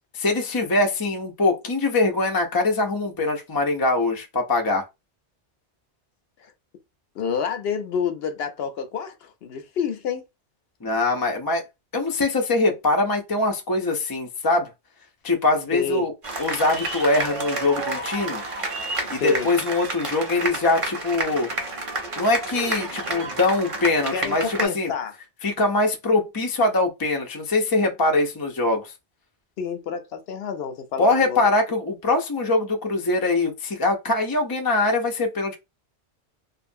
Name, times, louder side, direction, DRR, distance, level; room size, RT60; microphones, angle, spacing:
voice 1, 0.1-4.8 10.8-11.6 11.9-14.7 15.2-16.1 16.4-18.4 19.1-21.5 22.2-24.9 25.4-28.9 31.0-35.6, left 2 dB, 35° left, 0.4 m, -23 dB
voice 2, 7.2-10.2 15.7-16.1 19.2-19.5 24.1-25.1 29.6-31.5, left 6 dB, 65° left, 0.8 m, -29 dB
sound 1, 16.2-24.6, right 2 dB, 35° right, 0.6 m, -30 dB
2.6 x 2.4 x 2.6 m
omnidirectional pair, 1.2 m